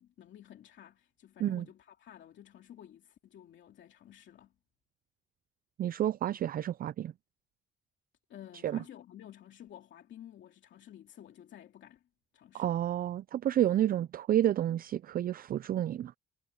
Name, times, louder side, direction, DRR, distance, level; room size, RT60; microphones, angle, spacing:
voice 1, 0.0-4.5 8.3-12.0 12.3-12.8, left 11 dB, 70° left, 2.5 m, -53 dB
voice 2, 5.8-7.1 8.6-8.8 12.5-16.1, right 11 dB, 45° right, 0.4 m, -30 dB
cardioid pair, 90°, 20 cm